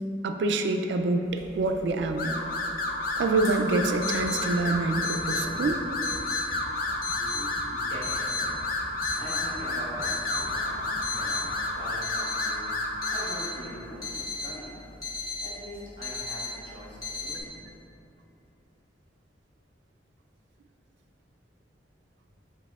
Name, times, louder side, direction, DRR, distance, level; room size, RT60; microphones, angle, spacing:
voice 1, 0.2-2.4 3.2-5.8, right 3 dB, 75° right, 6 dB, 0.3 m, -26 dB
sound 1, 1.3-17.4, left 4 dB, 20° left, 1.0 m, -37 dB
sound 2, 2.2-13.4, left 2 dB, 50° left, 0.4 m, -31 dB
sound 3, 4.2-11.7, right 1 dB, 20° right, 0.6 m, -45 dB
voice 2, 7.7-8.6 9.1-14.7 15.4-17.5, equal, 80° left, -8 dB, 1.4 m, -42 dB
7.8 x 2.7 x 2.3 m, 2.8 s
head